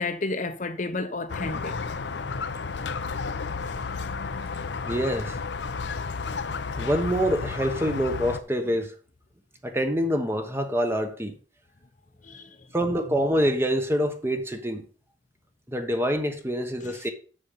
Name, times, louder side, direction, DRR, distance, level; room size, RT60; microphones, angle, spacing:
voice 1, 0.0-1.8 12.2-12.5, left 3 dB, 45° left, 0.8 m, -31 dB
Squeak, 1.3-8.4, left 4 dB, 75° left, 0.6 m, -32 dB
voice 2, 4.8-5.4 6.8-8.9 9.6-11.4 12.7-14.8 15.7-17.1, equal, 15° right, 1.1 m, -26 dB
7.1 x 6.8 x 5.6 m
head